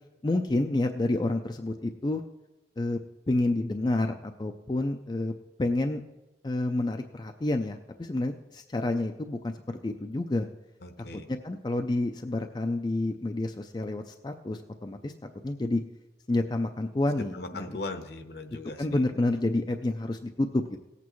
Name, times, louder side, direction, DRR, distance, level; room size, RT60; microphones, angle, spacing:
voice 1, 0.2-2.2 2.8-3.0 3.3-5.3 5.6-6.0 6.4-9.5 9.8-10.5 11.3-15.1 15.4-15.8 16.3-17.7 18.5-20.8, left 2 dB, 25° left, 5 dB, 0.4 m, -29 dB
voice 2, 10.8-11.3 17.3-19.0, left 2 dB, 60° left, 8 dB, 0.9 m, -39 dB
18.0 x 8.3 x 3.1 m, 1.1 s
head